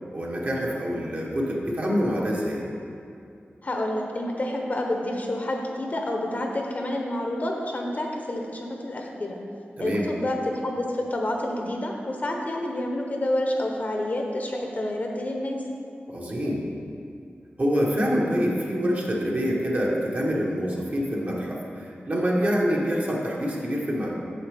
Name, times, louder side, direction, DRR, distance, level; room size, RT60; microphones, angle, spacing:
voice 1, 0.1-2.6 9.8-10.1 16.1-16.7 17.6-24.1, equal, 40° right, -3 dB, 1.2 m, -26 dB
voice 2, 3.6-9.4 9.8-15.6, left 1 dB, 40° left, 1 dB, 0.8 m, -28 dB
8.3 x 6.8 x 3.4 m, 2.5 s
wide cardioid pair, 110°, 4 cm